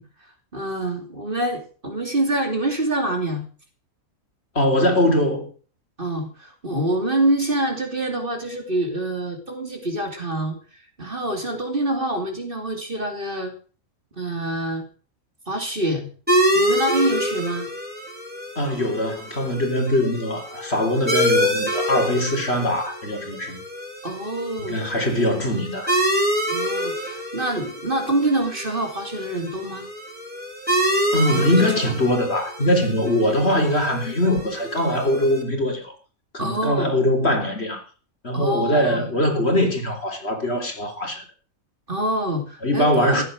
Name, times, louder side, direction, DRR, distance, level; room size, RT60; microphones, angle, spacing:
voice 1, 0.5-3.4 6.0-10.6 11.0-13.5 14.2-14.8 15.5-16.1 16.5-17.7 24.0-24.8 26.5-29.8 31.3-31.6 36.4-36.9 38.3-39.1 41.9-43.2, right 1 dB, 40° right, 3.1 m, -26 dB
voice 2, 4.5-5.5 18.6-23.6 24.7-26.0 31.1-35.9 36.3-37.8 38.2-41.2 42.6-43.2, left 1 dB, 50° left, 3.9 m, -22 dB
sound 1, 16.3-35.4, equal, 5° right, 4.5 m, -26 dB
15.0 x 10.0 x 6.4 m
omnidirectional pair, 1.5 m